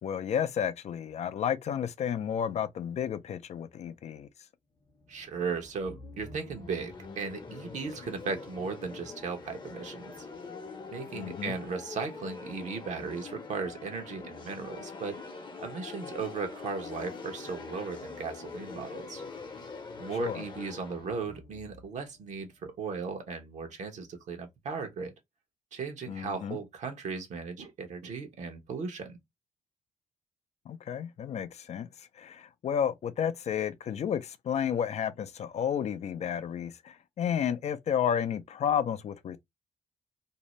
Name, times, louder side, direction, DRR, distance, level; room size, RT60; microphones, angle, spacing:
voice 1, 0.0-4.3 11.1-11.5 20.2-20.5 26.1-26.6 30.7-39.4, left 8 dB, 55° left, 0.5 m, -32 dB
sound 1, 4.8-22.6, left 4 dB, 35° left, 0.8 m, -44 dB
voice 2, 5.1-10.3 10.9-19.2 20.0-25.1 25.7-29.2, right 5 dB, 65° right, 0.9 m, -37 dB
2.6 x 2.0 x 3.0 m
supercardioid pair, 60°, 13 cm